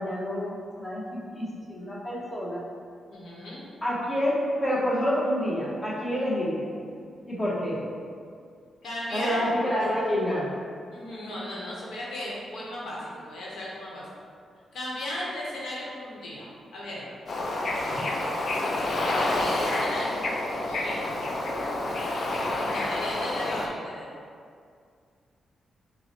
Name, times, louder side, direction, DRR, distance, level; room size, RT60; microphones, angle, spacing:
voice 1, 0.0-2.6 3.8-6.7 7.3-7.8 9.1-10.5, equal, 20° left, -5 dB, 0.9 m, -28 dB
voice 2, 3.1-3.7 8.8-9.5 9.8-9.9 10.9-14.0 14.7-17.1 18.6-20.3 20.7-21.3 22.6-24.1, left 1 dB, 80° left, -5 dB, 0.9 m, -36 dB
Bird / Ocean, 17.3-23.7, left 2 dB, 55° left, 0.4 m, -28 dB
5.5 x 2.1 x 2.9 m, 2.3 s
cardioid pair, 80°, 0 cm